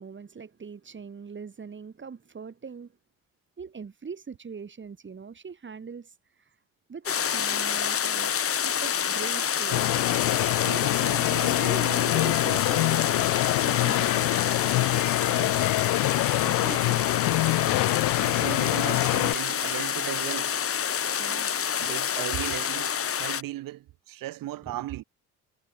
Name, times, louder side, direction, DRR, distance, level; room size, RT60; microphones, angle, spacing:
voice 1, 0.0-2.9 3.6-6.5 6.9-8.3 8.6-10.0 10.6-14.3 21.2-21.8 24.7-24.8, right 6 dB, 35° right, 4.8 m, -41 dB
sound 1, 7.1-23.4, left 8 dB, 40° left, 1.8 m, -28 dB
sound 2, 9.7-19.3, left 20 dB, 75° left, 0.5 m, -25 dB
voice 2, 15.3-15.7 16.4-17.1 17.6-20.6 21.8-25.0, right 15 dB, 75° right, 2.9 m, -37 dB
cardioid pair, 95°, 34 cm